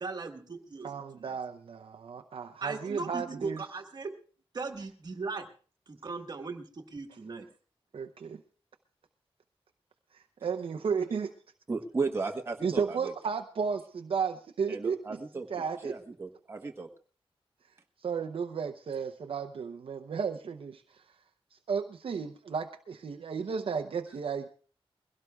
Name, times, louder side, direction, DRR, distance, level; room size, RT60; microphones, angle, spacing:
voice 1, 0.0-0.9 1.1-1.3 2.6-4.1 4.5-5.5 5.9-7.5, right 4 dB, 45° right, 4 dB, 1.5 m, -38 dB
voice 2, 0.8-3.6 7.9-8.4 10.4-11.3 12.6-15.2 15.5-15.9 18.0-21.0 21.7-24.5, right 6 dB, 65° right, 4 dB, 0.7 m, -33 dB
voice 3, 11.7-13.1 14.7-16.9, right 4 dB, 25° right, 2 dB, 1.2 m, -35 dB
22.0 x 16.5 x 2.3 m, 0.40 s
wide cardioid pair, 160°, 10 cm